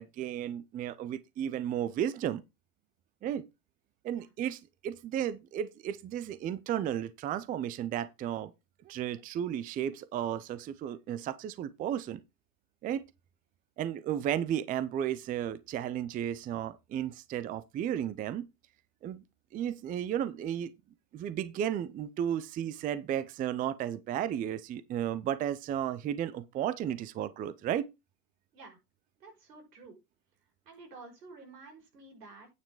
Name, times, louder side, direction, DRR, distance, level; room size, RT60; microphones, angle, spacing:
voice 1, 0.0-2.4 3.2-3.4 4.0-8.5 8.8-12.2 12.8-13.0 13.8-18.5 19.0-19.2 19.5-20.7 21.1-27.9, right 10 dB, 20° right, 0.5 m, -34 dB
voice 2, 29.2-30.0 30.6-32.5, right 3 dB, 90° right, 5.9 m, -51 dB
9.4 x 5.8 x 4.8 m
hypercardioid pair, 120°, 47 cm